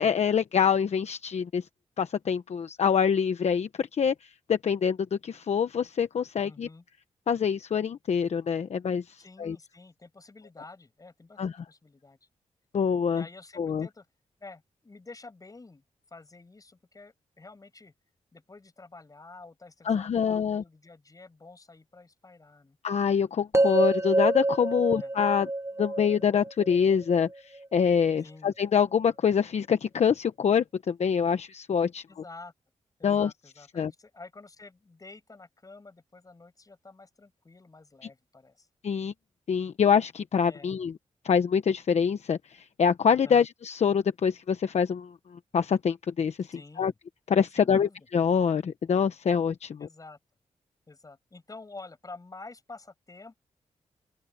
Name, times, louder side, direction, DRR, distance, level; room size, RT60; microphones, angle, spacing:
voice 1, 0.0-1.6 2.0-4.1 4.5-6.7 7.3-9.6 11.4-11.5 12.7-13.2 13.6-13.9 19.8-20.6 22.8-25.5 25.8-32.0 33.0-33.3 33.8-33.9 38.8-39.1 39.5-40.9 41.2-45.1 45.5-46.9 47.3-49.8, left 7 dB, 65° left, 1.1 m, -25 dB
voice 2, 6.4-6.9 9.2-12.2 13.1-14.1 14.4-15.8 16.1-17.9 18.3-22.8 24.9-25.1 28.2-28.5 32.1-32.5 33.0-38.7 40.4-40.7 43.2-43.5 46.5-47.0 47.6-48.0 49.8-50.2 50.9-53.4, left 3 dB, 30° left, 7.2 m, -49 dB
sound 1, 23.5-27.7, right 2 dB, 20° right, 1.5 m, -27 dB
open air
cardioid pair, 95°, 12 cm